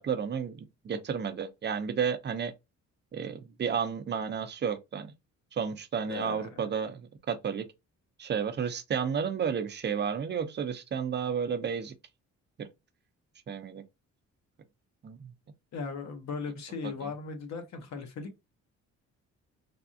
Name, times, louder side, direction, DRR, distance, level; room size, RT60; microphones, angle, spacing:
voice 1, 0.0-2.5 3.1-5.1 5.5-7.0 7.3-7.7 8.2-11.9 12.6-12.7 13.5-13.8 15.0-15.3, right 7 dB, 35° right, 0.6 m, -32 dB
voice 2, 6.0-6.7 15.7-18.4, left 4 dB, 65° left, 1.0 m, -38 dB
3.4 x 2.3 x 2.6 m
cardioid pair, 90°, 30 cm